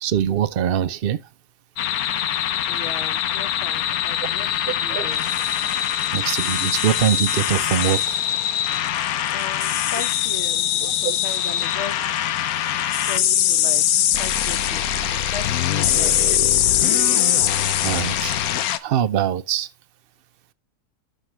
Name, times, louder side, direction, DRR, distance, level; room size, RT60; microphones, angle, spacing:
voice 1, 0.0-1.2 4.9-5.1 6.1-8.2 11.0-11.2 17.8-18.3 18.8-19.7, right 10 dB, 70° right, 0.5 m, -22 dB
sound 1, 1.8-18.8, left 10 dB, 70° left, 1.1 m, -22 dB
voice 2, 2.6-5.2 9.3-12.1 13.0-14.8 15.1-15.4 15.8-16.4, left 5 dB, 50° left, 1.3 m, -37 dB
12.0 x 5.9 x 3.2 m
omnidirectional pair, 1.7 m